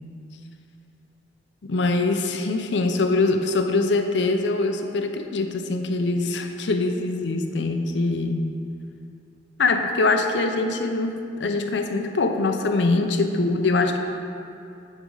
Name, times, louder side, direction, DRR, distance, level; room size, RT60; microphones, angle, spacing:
voice 1, 1.7-8.6 9.6-14.0, left 3 dB, 75° left, 5 dB, 0.6 m, -23 dB
8.8 x 5.2 x 3.9 m, 2.6 s
head